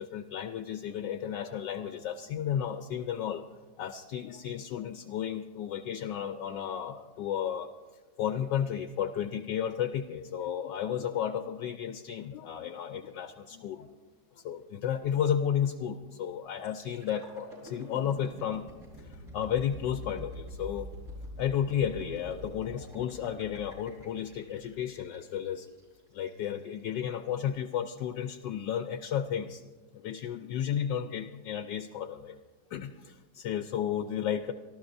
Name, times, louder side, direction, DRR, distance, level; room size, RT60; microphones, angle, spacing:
voice 1, 0.0-3.4 3.8-7.7 8.2-13.9 14.4-18.7 19.0-20.9 21.4-25.7 26.1-29.6 29.9-32.3 32.7-34.5, left 9 dB, 75° left, 8 dB, 1.2 m, -33 dB
sound 1, 16.6-26.4 26.9-27.1, equal, 40° right, 6.2 m, -46 dB
24.5 x 14.0 x 2.6 m, 1.4 s
omnidirectional pair, 2.0 m